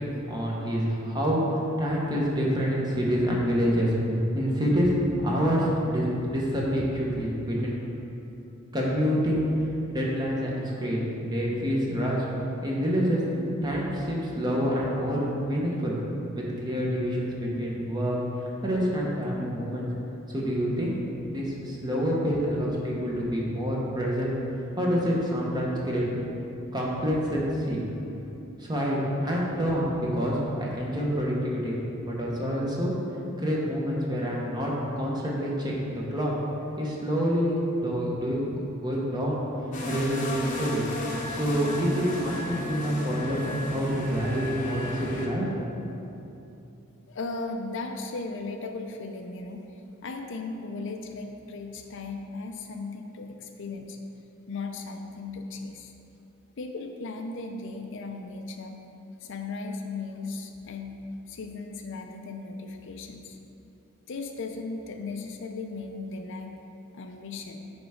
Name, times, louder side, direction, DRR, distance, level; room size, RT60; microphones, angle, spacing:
voice 1, 0.0-1.4 1.8-4.0 4.3-4.9 5.2-7.8 8.7-9.5 9.9-12.2 12.6-13.2 13.6-16.0 16.3-18.2 18.6-19.9 20.3-21.0 21.3-24.3 24.8-26.1 26.7-27.8 28.6-31.8 32.0-32.9 33.4-36.3 36.8-39.4 39.9-40.8 41.3-45.7, equal, 20° right, -4 dB, 1.1 m, -27 dB
sound 1, 39.7-45.3, left 1 dB, 40° left, 0.9 m, -34 dB
voice 2, 47.1-49.6 50.0-54.0 54.4-55.9 56.6-58.8 59.2-61.0 61.3-63.4 64.1-66.6 66.9-67.7, left 3 dB, 60° left, 4 dB, 0.5 m, -36 dB
8.7 x 3.5 x 5.0 m, 2.9 s
head